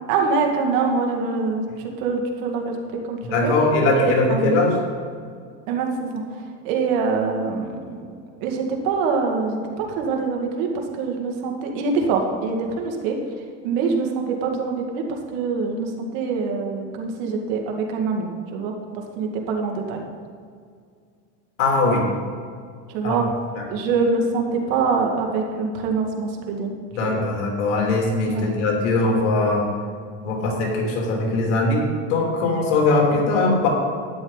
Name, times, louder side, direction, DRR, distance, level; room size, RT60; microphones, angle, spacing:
voice 1, 0.1-2.7 3.1-3.5 4.0-4.7 5.7-6.2 6.6-8.0 8.4-10.7 11.0-13.2 13.6-15.0 15.3-18.7 19.2-20.0 22.9-23.2 23.7-27.2 28.3-28.5, right 4 dB, 65° right, 2 dB, 2.1 m, -24 dB
voice 2, 3.3-4.7 21.6-22.0 23.0-23.2 23.5-23.6 26.9-29.7 30.2-33.7, left 3 dB, 85° left, -1 dB, 3.1 m, -21 dB
12.5 x 9.6 x 4.1 m, 2.2 s
supercardioid pair, 135°, 35 cm